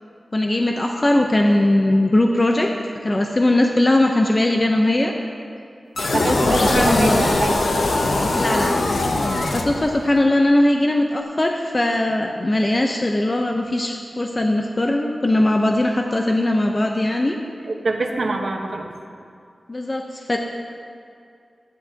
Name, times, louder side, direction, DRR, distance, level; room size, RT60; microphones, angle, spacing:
voice 1, 0.3-2.7 3.0-5.1 6.3-6.4 6.7-7.2 8.3-8.7 9.5-17.4 19.7-20.4, left 1 dB, 35° left, 2 dB, 0.8 m, -19 dB
sound 1, 6.0-10.2, left 2 dB, 80° left, 0.9 m, -21 dB
voice 2, 6.1-7.6 17.7-18.9, right 2 dB, 70° right, 2 dB, 1.2 m, -24 dB
15.5 x 11.0 x 2.9 m, 2.4 s
wide cardioid pair, 65°, 0 cm